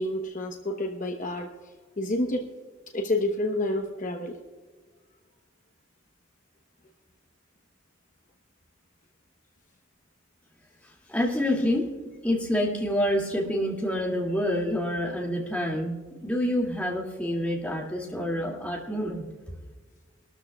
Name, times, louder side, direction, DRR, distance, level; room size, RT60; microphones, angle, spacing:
voice 1, 0.0-1.5 2.0-2.5 2.9-4.4, left 1 dB, 40° left, 3 dB, 1.0 m, -29 dB
voice 2, 11.1-11.9 12.2-19.2, left 1 dB, 5° left, -3 dB, 2.3 m, -27 dB
24.0 x 13.0 x 2.3 m, 1.4 s
head